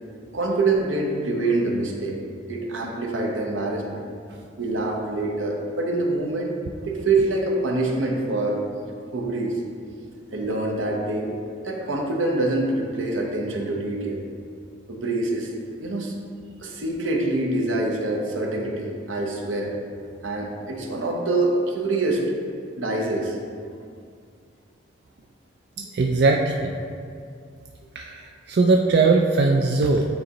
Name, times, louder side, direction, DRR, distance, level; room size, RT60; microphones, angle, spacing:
voice 1, 0.3-2.2 2.5-4.0 4.6-6.5 6.9-9.6 10.3-11.3 11.6-14.2 14.9-15.5 15.8-16.1 16.6-19.8 20.2-22.2 22.8-23.4, right 2 dB, 85° right, 0 dB, 0.9 m, -25 dB
voice 2, 25.8-26.7 28.0-30.1, right 3 dB, 55° right, 1 dB, 0.3 m, -20 dB
8.8 x 4.0 x 2.9 m, 2.3 s
head